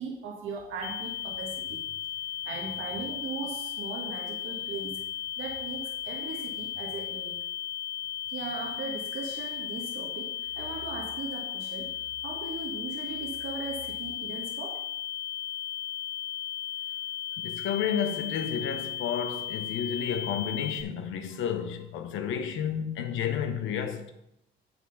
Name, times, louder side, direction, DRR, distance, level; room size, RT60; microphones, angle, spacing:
voice 1, 0.0-1.8 2.4-5.0 5.4-7.4 8.3-14.8, right 4 dB, 85° right, 1.3 m, -38 dB
sound 1, 0.8-20.8, left 11 dB, 60° left, 0.5 m, -36 dB
voice 2, 17.4-24.1, left 8 dB, 85° left, 0.9 m, -31 dB
9.2 x 3.6 x 5.6 m
cardioid pair, 90°, 20 cm